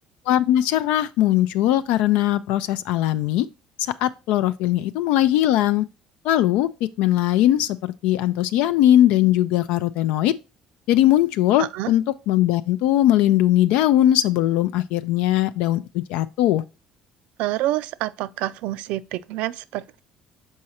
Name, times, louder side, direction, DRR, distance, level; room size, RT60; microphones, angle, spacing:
voice 1, 0.3-3.5 4.0-5.8 6.2-6.7 7.0-10.3 10.9-16.6, left 13 dB, 90° left, 0.4 m, -20 dB
voice 2, 11.6-11.9 17.4-20.0, right 15 dB, 80° right, 0.4 m, -27 dB
6.4 x 4.8 x 4.2 m
cardioid pair, 125°, 2 cm